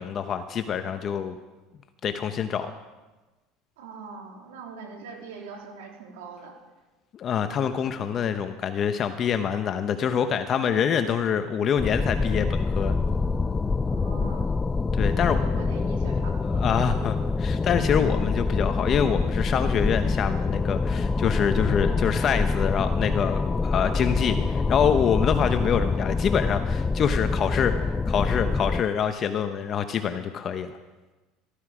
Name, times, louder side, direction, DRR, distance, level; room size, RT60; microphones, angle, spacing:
voice 1, 0.0-1.4 2.0-2.7 7.1-13.0 14.9-15.4 16.5-27.7 28.1-30.7, left 8 dB, 40° left, 8 dB, 0.9 m, -26 dB
voice 2, 3.8-6.5 13.9-14.6 15.1-16.7, right 4 dB, 90° right, 1 dB, 3.2 m, -42 dB
sound 1, 11.8-28.8, left 4 dB, 20° left, 0.4 m, -25 dB
14.5 x 13.0 x 5.0 m, 1.2 s
supercardioid pair, 110°, 0 cm